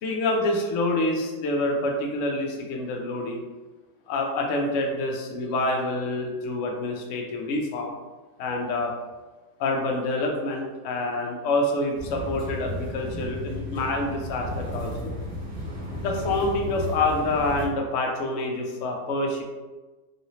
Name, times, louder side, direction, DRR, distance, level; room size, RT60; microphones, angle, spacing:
voice 1, 0.0-3.4 4.1-7.9 8.4-8.9 9.6-15.1 16.0-19.4, left 2 dB, 65° left, 1 dB, 0.8 m, -27 dB
sound 1, 11.9-17.7, equal, 40° right, 0.9 m, -34 dB
3.1 x 2.8 x 2.9 m, 1.2 s
omnidirectional pair, 1.8 m